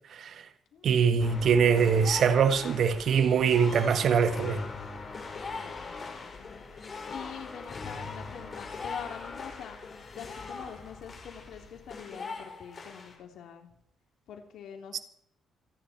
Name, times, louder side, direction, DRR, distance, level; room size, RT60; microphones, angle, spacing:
voice 1, 0.1-0.4 0.8-4.6 14.9-15.0, right 6 dB, 60° right, 1.7 m, -23 dB
voice 2, 0.7-1.1 5.5-6.7 7.1-9.8 10.1-13.7 14.3-15.0, left 8 dB, 75° left, 3.4 m, -45 dB
sound 1, 1.2-13.1, left 4 dB, 40° left, 5.5 m, -40 dB
28.0 x 10.0 x 4.5 m
cardioid pair, 90°, 0 cm